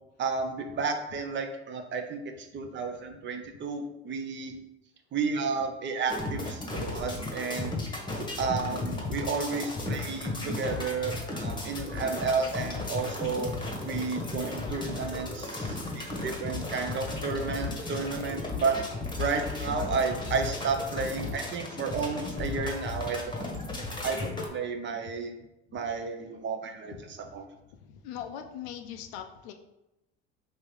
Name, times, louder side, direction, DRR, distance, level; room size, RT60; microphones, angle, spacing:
voice 1, 0.2-4.6 5.1-7.8 8.4-13.5 13.8-18.8 19.2-23.6 24.0-25.3 25.7-27.5, right 5 dB, 35° right, 5 dB, 0.6 m, -32 dB
voice 2, 2.5-2.8 7.5-7.8 15.6-16.0 23.9-24.0 25.0-25.1 26.9-27.4 27.7-29.5, left 9 dB, 75° left, 5 dB, 0.6 m, -43 dB
sound 1, 6.1-24.5, left 3 dB, 15° left, 1.0 m, -35 dB
3.7 x 2.8 x 3.1 m, 0.93 s
hypercardioid pair, 70°, 34 cm